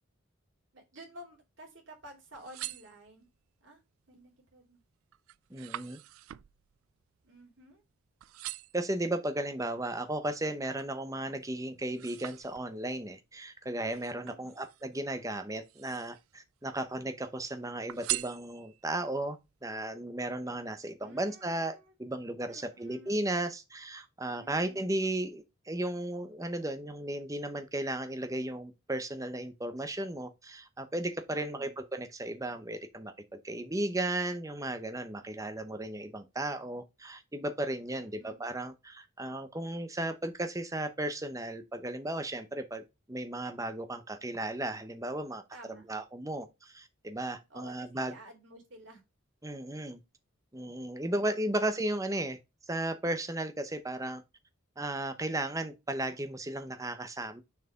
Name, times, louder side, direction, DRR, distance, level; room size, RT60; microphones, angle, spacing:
voice 1, 0.7-3.3 3.6-3.8 4.1-4.8 7.2-7.8 14.2-14.6 21.0-21.9 22.4-23.2 24.3-24.8 31.3-31.8 37.9-38.5 45.5-45.9 47.5-49.0 51.1-51.5, right 1 dB, 60° right, 3.0 m, -53 dB
sound 1, 2.2-3.5 4.0-4.4 4.8-7.9 8.2-8.9 9.5-11.0 11.4-13.0 13.9-15.0 15.5-16.3 16.7-17.4 17.9-18.9 19.5-19.6, right 16 dB, 85° right, 0.4 m, -42 dB
voice 2, 5.5-6.0 8.7-45.4 45.7-48.2 49.4-50.0 50.5-52.4 52.7-54.2 54.8-57.4, right 1 dB, 15° right, 0.7 m, -35 dB
6.7 x 4.6 x 3.6 m
head